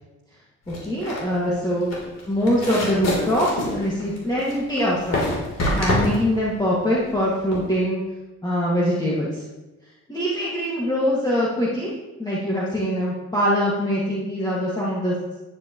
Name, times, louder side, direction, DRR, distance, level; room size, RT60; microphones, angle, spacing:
sound 1, 0.7-7.7, left 1 dB, 55° left, 3.5 m, -27 dB
voice 1, 0.7-1.9 2.3-5.3 5.8-8.0 8.4-9.4 10.1-11.9 12.2-15.1, equal, 15° left, -7 dB, 2.1 m, -23 dB
10.5 x 9.4 x 3.1 m, 1.1 s
cardioid pair, 90°, 30 cm